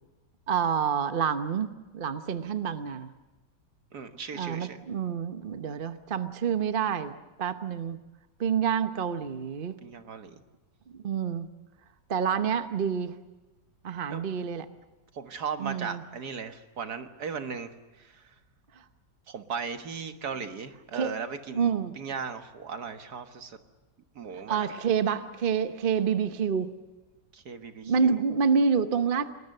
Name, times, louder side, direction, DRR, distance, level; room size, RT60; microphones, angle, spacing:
voice 1, 0.5-3.1 4.3-8.0 8.4-9.8 11.0-11.5 12.1-13.2 13.8-14.7 15.6-16.0 20.9-21.1 21.5-21.9 24.3-26.7 27.8-29.3, right 6 dB, 40° right, 10 dB, 1.0 m, -28 dB
voice 2, 3.9-4.8 9.8-10.4 14.1-14.2 15.1-18.3 19.3-23.6 24.2-24.7 27.3-28.2, right 6 dB, 65° right, 8 dB, 2.0 m, -37 dB
29.5 x 20.5 x 6.7 m, 1.1 s
omnidirectional pair, 1.9 m